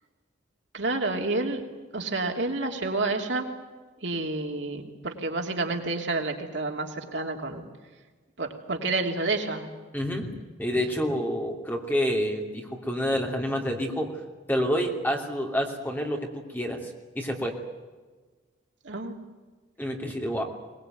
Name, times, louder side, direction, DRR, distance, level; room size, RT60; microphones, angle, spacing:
voice 1, 0.7-1.6 1.9-3.5 4.0-7.6 8.4-9.7 18.8-19.2, right 3 dB, 70° right, 2 dB, 3.0 m, -29 dB
voice 2, 9.9-10.3 10.6-14.1 14.5-17.5 19.8-20.4, equal, 10° left, 1 dB, 3.0 m, -28 dB
22.0 x 20.5 x 9.3 m, 1.3 s
head